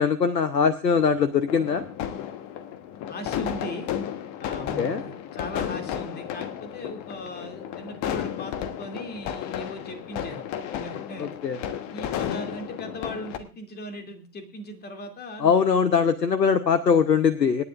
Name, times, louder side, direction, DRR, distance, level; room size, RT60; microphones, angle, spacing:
voice 1, 0.0-1.8 4.8-5.0 11.2-11.6 15.4-17.6, left 6 dB, 85° left, 14 dB, 0.9 m, -21 dB
sound 1, 0.9-13.4, left 10 dB, 35° left, 1.3 m, -33 dB
voice 2, 3.1-3.9 4.4-10.4 10.7-11.3 11.9-15.8, left 1 dB, 20° left, 5 dB, 2.6 m, -38 dB
26.5 x 9.8 x 2.5 m, 0.35 s
figure-of-eight pair, 90°, 49 cm